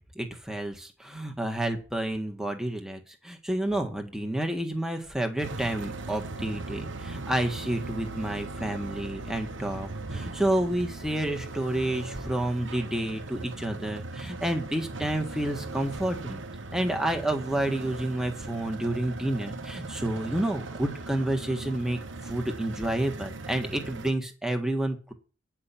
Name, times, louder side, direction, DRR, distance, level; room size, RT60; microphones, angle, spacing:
voice 1, 0.1-16.4 16.7-25.1, right 1 dB, 5° right, 4 dB, 1.5 m, -30 dB
sound 1, 5.4-24.1, right 3 dB, 85° right, 1.1 m, -39 dB
9.6 x 5.9 x 8.5 m, 0.36 s
head